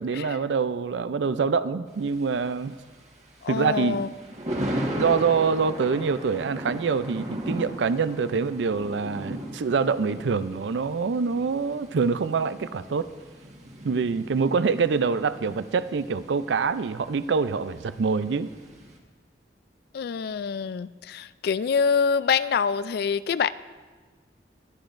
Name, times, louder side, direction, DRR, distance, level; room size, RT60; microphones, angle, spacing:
voice 1, 0.0-2.8 3.5-4.2 5.0-13.1 13.8-18.5, right 5 dB, 90° right, 14 dB, 0.4 m, -25 dB
Thunder, 1.9-19.0, right 1 dB, 40° right, 1.5 m, -37 dB
voice 2, 3.4-4.1 19.9-23.5, left 6 dB, 60° left, 15 dB, 0.3 m, -25 dB
21.5 x 10.5 x 2.6 m, 1.4 s
head